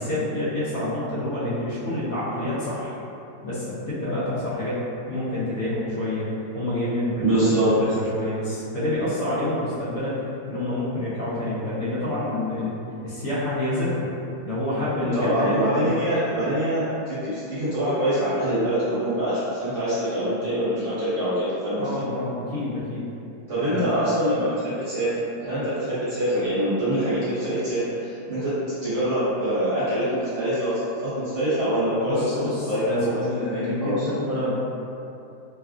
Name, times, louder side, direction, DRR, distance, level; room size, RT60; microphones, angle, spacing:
voice 1, 0.0-3.0 3.4-6.2 6.5-12.7 13.0-14.1 14.4-16.0 21.8-23.0 23.7-23.9 32.0-34.6, left 1 dB, 60° left, -11 dB, 1.1 m, -28 dB
voice 2, 7.2-7.8 15.0-22.0 23.5-25.1 25.4-28.5 28.8-30.7 31.0-32.3 32.6-34.1, right 1 dB, 50° right, -13 dB, 1.1 m, -24 dB
3.2 x 2.3 x 2.4 m, 2.7 s
omnidirectional pair, 2.0 m